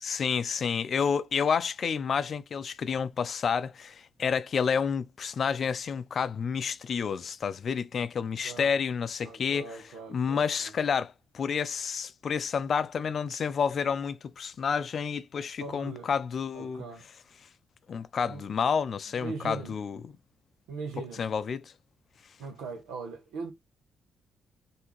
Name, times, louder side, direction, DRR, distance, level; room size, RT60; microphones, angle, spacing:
voice 1, 0.0-9.8 10.1-16.8 17.9-20.2 21.2-21.7, left 6 dB, 55° left, 0.4 m, -30 dB
voice 2, 9.2-10.7 15.6-16.1 16.5-17.0 18.3-18.5 19.2-19.7 20.7-21.2 22.4-23.5, right 4 dB, 90° right, 0.9 m, -40 dB
3.4 x 2.7 x 3.0 m
supercardioid pair, 60°, 0 cm